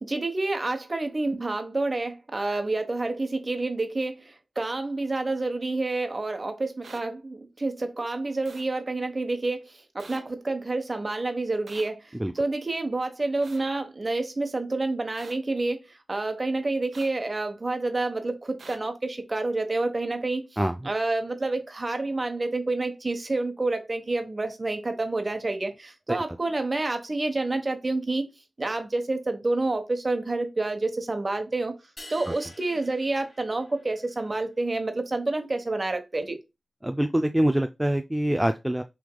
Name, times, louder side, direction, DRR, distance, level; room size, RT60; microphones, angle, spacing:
voice 1, 0.0-4.2 4.6-9.6 9.9-12.0 12.4-15.8 16.1-20.4 20.8-28.2 28.6-31.7 32.1-36.4, right 2 dB, 40° right, 1.1 m, -28 dB
sound 1, 6.8-7.0 8.5-8.6 10.0-10.2 11.7-11.9 13.4-13.6 15.2-15.3 16.9-17.1 18.6-18.8, right 4 dB, 75° right, 0.8 m, -45 dB
voice 2, 20.6-20.9 26.1-26.2 32.3-32.4 36.8-38.8, right 1 dB, 10° right, 0.4 m, -25 dB
sound 2, 32.0-34.3, left 1 dB, 40° left, 1.7 m, -48 dB
6.0 x 3.5 x 2.3 m
cardioid pair, 50°, 0 cm